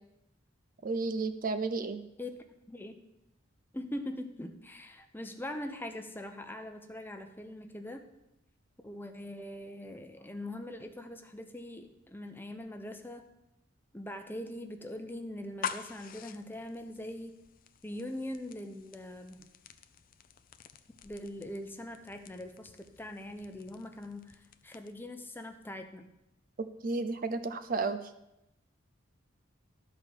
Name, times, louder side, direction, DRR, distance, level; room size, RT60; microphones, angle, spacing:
voice 1, 0.8-2.0 26.6-28.0, right 3 dB, 45° right, 11 dB, 0.5 m, -32 dB
voice 2, 3.7-8.0 8.8-13.2 13.9-17.4 17.8-19.5 21.0-24.4 24.6-26.1, left 1 dB, 10° left, 5 dB, 0.7 m, -42 dB
sound 1, 15.4-25.1, left 8 dB, 45° left, 0.5 m, -47 dB
12.5 x 4.4 x 7.1 m, 0.89 s
head